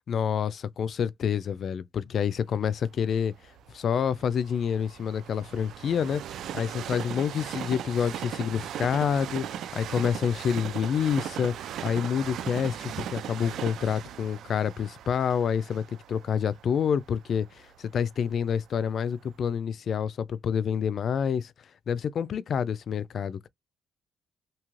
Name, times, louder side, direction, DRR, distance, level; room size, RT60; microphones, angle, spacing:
voice 1, 0.1-3.3 3.7-6.2 6.5-11.5 11.8-21.5 21.9-23.5, left 7 dB, 60° left, 0.3 m, -28 dB
Train, 2.7-18.6 19.2-19.3, right 10 dB, 75° right, 0.3 m, -39 dB
3.1 x 2.7 x 2.4 m
cardioid pair, 90°, 0 cm